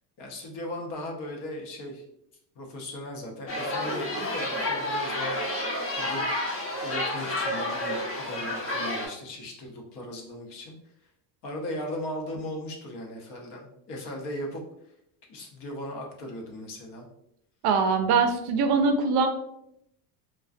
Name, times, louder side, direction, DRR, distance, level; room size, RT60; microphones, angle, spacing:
voice 1, 0.2-2.0 2.6-10.7 11.4-14.6 15.3-17.1, left 1 dB, 60° left, 0 dB, 0.8 m, -38 dB
sound 1, 3.5-9.1, left 1 dB, 30° left, 0.8 m, -30 dB
voice 2, 17.6-19.3, right 4 dB, 55° right, 6 dB, 0.5 m, -22 dB
2.4 x 2.2 x 2.5 m, 0.77 s
supercardioid pair, 100°, 47 cm